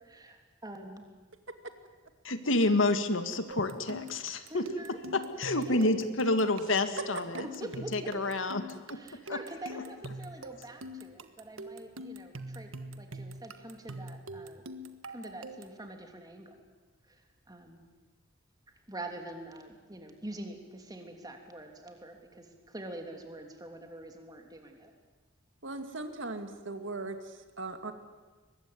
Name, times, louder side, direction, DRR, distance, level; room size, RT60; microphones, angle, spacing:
voice 1, 0.0-1.0 4.5-5.0 5.5-6.0 7.4-8.3 8.9-14.6 15.1-16.6 17.1-17.2 17.5-17.8 18.9-24.9, right 1 dB, 20° right, 4 dB, 3.1 m, -45 dB
voice 2, 2.2-4.6 5.1-8.6 8.9-9.0 9.3-9.4, left 2 dB, 75° left, 9 dB, 1.9 m, -29 dB
sound 1, 3.5-15.8, right 1 dB, 90° right, 1.5 m, -44 dB
voice 3, 25.6-27.9, right 2 dB, 65° right, 8 dB, 2.2 m, -39 dB
23.0 x 21.0 x 9.6 m, 1.3 s
head